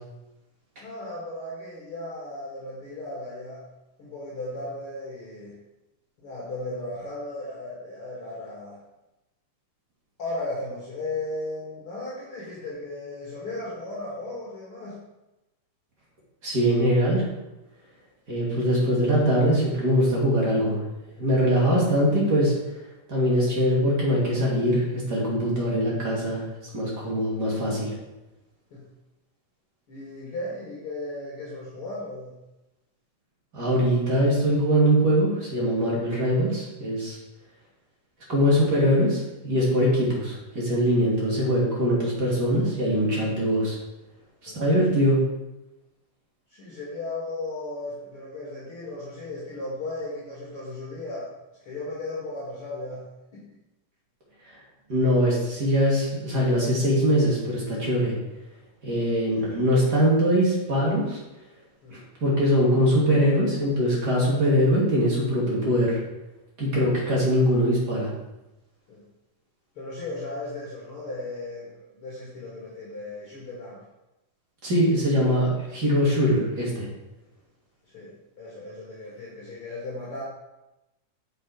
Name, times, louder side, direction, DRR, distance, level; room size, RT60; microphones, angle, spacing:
voice 1, 0.8-3.7 4.0-5.5 6.2-8.8 10.2-15.0 28.7-28.8 29.9-32.3 40.0-40.1 44.5-44.6 46.5-51.3 51.6-53.0 53.3-53.5 61.8-62.0 68.9-69.0 69.8-73.8 77.9-80.2, left 2 dB, 45° left, -6 dB, 2.6 m, -36 dB
voice 2, 16.4-17.2 18.3-20.8 21.2-22.5 23.1-27.9 33.5-37.2 38.3-43.8 44.4-45.2 54.4-54.6 54.9-58.2 58.8-61.2 61.9-66.0 66.6-68.1 74.6-76.9, equal, 35° right, -4 dB, 2.7 m, -22 dB
7.0 x 6.7 x 5.2 m, 0.99 s
omnidirectional pair, 3.7 m